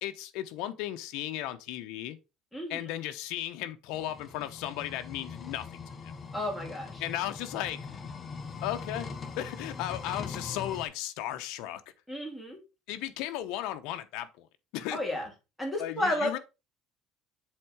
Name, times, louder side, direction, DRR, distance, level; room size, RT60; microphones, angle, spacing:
voice 1, 0.0-2.2 2.7-6.2 7.0-7.8 8.6-9.1 9.4-11.8 12.9-14.5 14.7-15.0 15.8-16.4, left 13 dB, 75° left, 0.9 m, -35 dB
sound 1, 3.9-10.9, left 5 dB, 25° left, 0.9 m, -41 dB
voice 2, 6.3-7.0 12.1-12.6 14.9-15.3 15.6-16.4, left 1 dB, 5° left, 2.5 m, -32 dB
7.6 x 3.6 x 4.8 m
cardioid pair, 145°, 0 cm